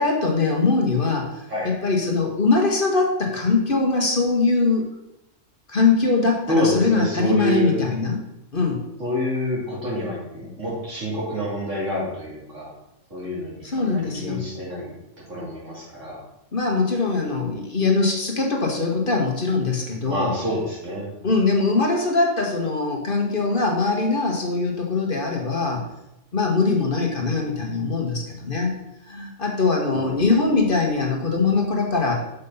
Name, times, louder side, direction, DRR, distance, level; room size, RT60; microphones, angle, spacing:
voice 1, 0.0-4.9 5.7-8.2 8.5-8.8 13.6-14.4 16.5-20.3 21.2-25.9 26.3-28.7 29.1-32.1, left 3 dB, 45° left, 1 dB, 1.4 m, -22 dB
voice 2, 6.5-7.8 9.0-12.7 13.1-14.9 15.3-16.2 20.0-21.1 29.9-30.2, equal, 75° right, -5 dB, 3.2 m, -27 dB
6.8 x 5.2 x 5.5 m, 0.89 s
omnidirectional pair, 1.3 m